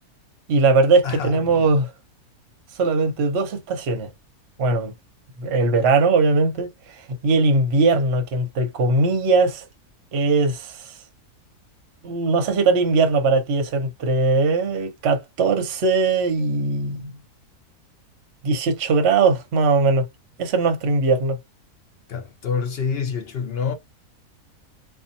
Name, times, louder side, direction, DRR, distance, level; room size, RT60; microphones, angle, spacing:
voice 1, 0.5-1.9 2.8-4.1 4.6-4.9 5.4-6.7 7.2-9.6 10.1-10.9 12.0-17.1 18.4-20.0 20.4-21.4, right 3 dB, 55° right, 0.8 m, -20 dB
voice 2, 1.0-1.7 22.1-23.7, left 6 dB, 65° left, 0.6 m, -27 dB
2.7 x 2.4 x 2.6 m
omnidirectional pair, 1.6 m